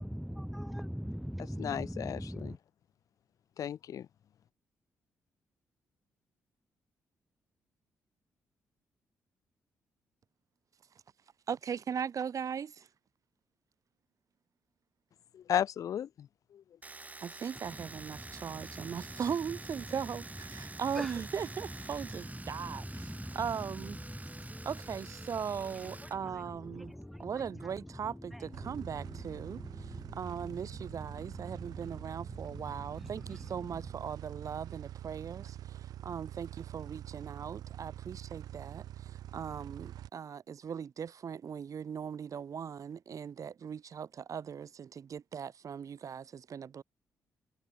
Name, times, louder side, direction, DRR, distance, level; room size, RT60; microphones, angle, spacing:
voice 1, 0.0-2.6 17.6-33.9, equal, ahead, 2.5 m, -44 dB
voice 2, 1.6-2.6 3.6-4.1 15.3-16.6, left 9 dB, 60° left, 0.4 m, -35 dB
voice 3, 11.5-12.7 17.4-18.2 18.4-20.2 20.8-22.8 23.4-23.9 24.7-26.8 27.2-28.1 28.7-29.6 30.2-30.7 30.9-33.2 33.5-35.4 36.1-36.5 36.7-38.6 39.3-39.9 40.1-40.4 40.6-44.7 45.3-46.2 46.5-46.8, right 7 dB, 55° right, 1.6 m, -38 dB
Domestic sounds home sounds, 16.8-26.2 26.4-27.3, right 3 dB, 25° right, 0.8 m, -49 dB
sound 1, 22.5-30.5, left 2 dB, 25° left, 2.0 m, -54 dB
sound 2, 28.5-40.1, right 12 dB, 75° right, 1.6 m, -45 dB
supercardioid pair, 50°, 7 cm